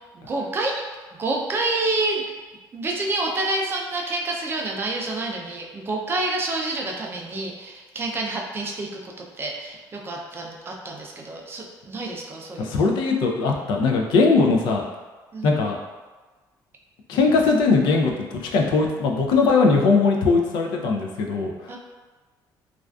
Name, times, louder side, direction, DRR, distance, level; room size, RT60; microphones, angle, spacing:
voice 1, 0.1-0.8 1.2-2.2 2.7-12.9 15.3-15.6 21.7-21.8, right 2 dB, 30° right, 0 dB, 0.4 m, -28 dB
voice 2, 12.6-14.8 15.4-15.8 17.1-21.8, left 4 dB, 80° left, 1 dB, 0.4 m, -20 dB
2.4 x 2.3 x 2.2 m, 1.3 s
cardioid pair, 110°, 8 cm